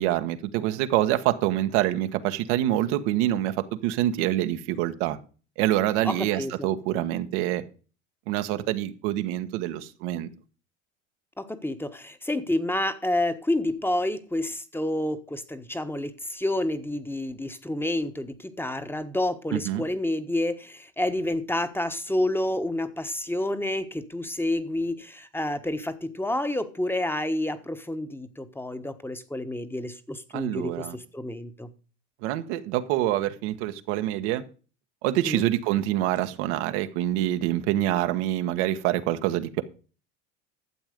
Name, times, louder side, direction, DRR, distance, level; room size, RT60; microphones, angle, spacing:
voice 1, 0.0-3.5 3.8-5.2 5.6-7.6 8.3-10.3 19.5-19.8 30.3-31.0 32.2-34.4 35.0-39.6, right 13 dB, 75° right, 1.3 m, -26 dB
voice 2, 6.0-6.7 11.4-31.7 35.2-35.4, left 1 dB, 5° left, 1.2 m, -29 dB
12.5 x 7.4 x 5.2 m
supercardioid pair, 90°, 34 cm